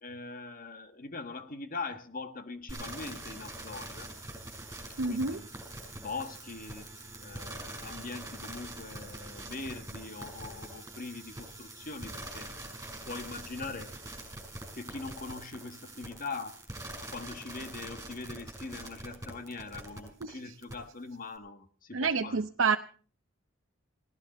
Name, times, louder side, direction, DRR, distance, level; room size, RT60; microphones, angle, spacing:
voice 1, 0.0-4.1 5.0-5.5 6.0-6.9 7.2-12.5 12.8-13.9 14.7-16.6 17.1-22.4, left 3 dB, 45° left, 8 dB, 1.6 m, -42 dB
sound 1, 2.7-20.2 20.6-20.7, right 1 dB, 15° right, 5.9 m, -44 dB
voice 2, 5.0-5.4 20.2-20.5 21.9-22.8, right 5 dB, 80° right, 6 dB, 0.7 m, -29 dB
19.0 x 18.0 x 4.2 m, 0.42 s
head